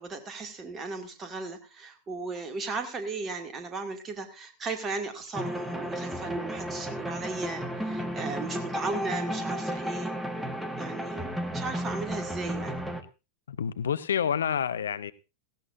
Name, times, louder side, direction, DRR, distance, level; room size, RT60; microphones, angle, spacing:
voice 1, 0.0-10.1 10.8-12.8, right 3 dB, 20° right, 6 dB, 2.3 m, -36 dB
sound 1, 5.3-13.0, equal, 5° right, 1.5 m, -33 dB
voice 2, 13.5-15.1, left 8 dB, 65° left, 15 dB, 0.6 m, -28 dB
17.0 x 15.5 x 2.6 m, 0.28 s
figure-of-eight pair, 90°, 0 cm